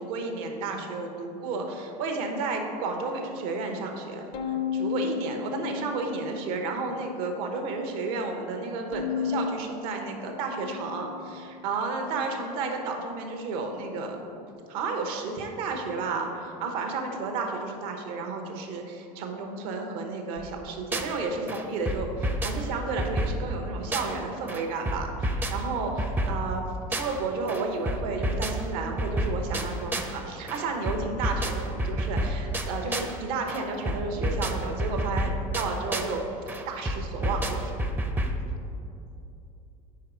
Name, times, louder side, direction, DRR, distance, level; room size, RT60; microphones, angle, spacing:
voice 1, 0.0-14.2 14.7-26.6 26.9-37.9, right 3 dB, 75° right, 3 dB, 0.9 m, -32 dB
Bowed string instrument, 4.3-6.7 7.2-7.9 8.9-11.4, left 7 dB, 60° left, 0.6 m, -34 dB
sound 1, 20.4-21.2 21.5-24.2 24.5-27.2 27.5-30.2 30.5-33.2 33.5-36.2 36.5-38.4, right 1 dB, 10° right, 0.5 m, -30 dB
4.7 x 4.7 x 4.8 m, 2.8 s
supercardioid pair, 100°, 19 cm